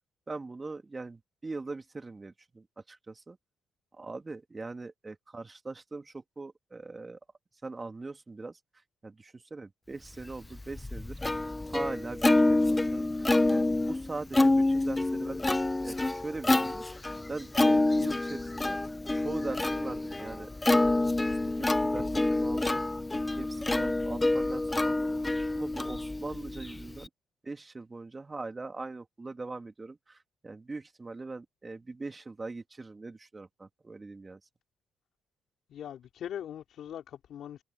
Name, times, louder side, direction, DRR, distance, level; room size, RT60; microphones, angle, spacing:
voice 1, 0.3-3.4 3.9-7.2 7.6-8.6 9.0-11.2 11.7-15.6 15.8-16.8 17.3-18.8 19.1-22.9 23.4-25.1 25.5-27.1 27.4-34.4, right 3 dB, 25° right, 2.6 m, -41 dB
Plucked string instrument, 10.3-27.1, left 2 dB, 15° left, 1.0 m, -27 dB
voice 2, 35.7-37.6, left 10 dB, 70° left, 3.5 m, -41 dB
cardioid pair, 90°, 0 cm